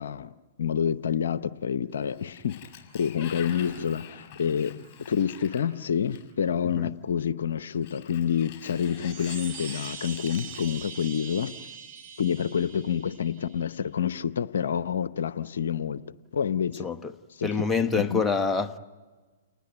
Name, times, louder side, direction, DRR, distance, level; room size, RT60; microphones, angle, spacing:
voice 1, 0.0-2.7 2.9-4.8 5.1-11.5 12.2-16.9 17.4-17.5 18.0-18.2, left 8 dB, 70° left, 0.8 m, -28 dB
Sliding door, 1.9-6.5 7.7-11.4, left 9 dB, 35° left, 5.4 m, -46 dB
sound 1, 8.7-13.7, right 7 dB, 35° right, 4.5 m, -43 dB
voice 2, 16.8-17.1 17.4-18.8, left 4 dB, 10° left, 1.2 m, -26 dB
30.0 x 20.0 x 9.1 m
hypercardioid pair, 120°, 0 cm